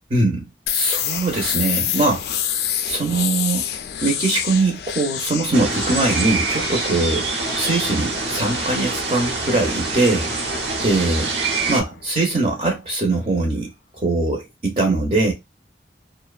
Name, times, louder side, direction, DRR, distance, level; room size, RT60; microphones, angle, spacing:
voice 1, 0.1-0.4 0.7-3.7 4.0-11.3 11.7-15.3, right 2 dB, 35° right, 0.6 m, -22 dB
sound 1, 0.7-12.3, left 10 dB, 70° left, 0.3 m, -29 dB
sound 2, 5.5-11.8, right 3 dB, 85° right, 0.7 m, -25 dB
2.6 x 2.1 x 2.3 m
head